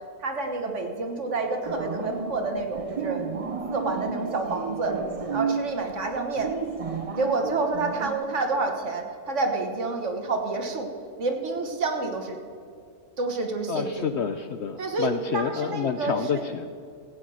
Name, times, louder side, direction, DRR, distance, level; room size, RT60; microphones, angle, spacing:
voice 1, 0.2-3.2 3.7-5.0 5.3-6.5 7.2-10.9 11.2-12.4 13.2-14.2 14.8-16.5, right 3 dB, 55° right, 4 dB, 1.6 m, -28 dB
sound 1, 1.6-8.1, right 5 dB, 35° right, 0.6 m, -32 dB
voice 2, 13.7-16.8, left 7 dB, 65° left, 9 dB, 0.7 m, -29 dB
15.5 x 8.6 x 6.3 m, 2.4 s
omnidirectional pair, 1.5 m